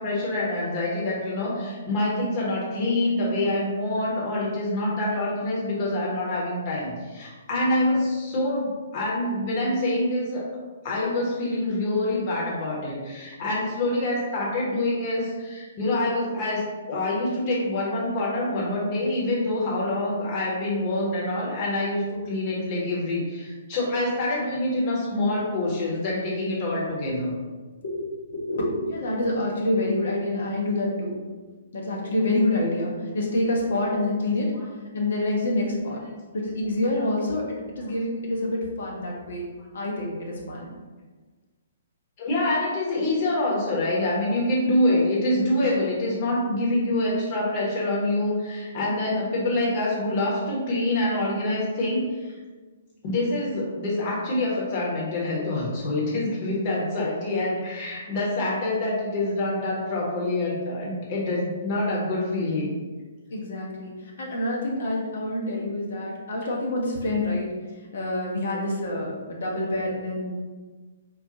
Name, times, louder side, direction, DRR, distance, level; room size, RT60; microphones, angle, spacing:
voice 1, 0.0-10.5 10.8-27.3 34.6-34.7 42.2-52.3 53.0-62.8, left 1 dB, 35° left, -5 dB, 1.0 m, -26 dB
voice 2, 28.3-31.2 31.7-34.5 34.9-36.0 36.3-40.7 63.3-67.5 67.9-70.3, left 1 dB, 55° left, -2 dB, 0.8 m, -27 dB
3.9 x 2.2 x 2.8 m, 1.3 s
figure-of-eight pair, 120°, 0 cm